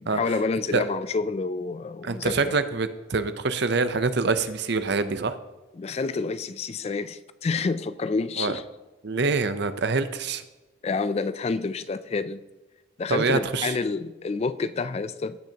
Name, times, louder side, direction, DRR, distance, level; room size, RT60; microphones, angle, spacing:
voice 1, 0.0-2.6 5.8-8.6 10.8-12.4 13.0-15.4, left 4 dB, 30° left, 14 dB, 0.3 m, -28 dB
voice 2, 2.0-5.3 8.4-8.6 9.0-10.4 13.1-13.7, right 4 dB, 55° right, 11 dB, 0.7 m, -25 dB
16.5 x 6.2 x 2.9 m, 1.1 s
head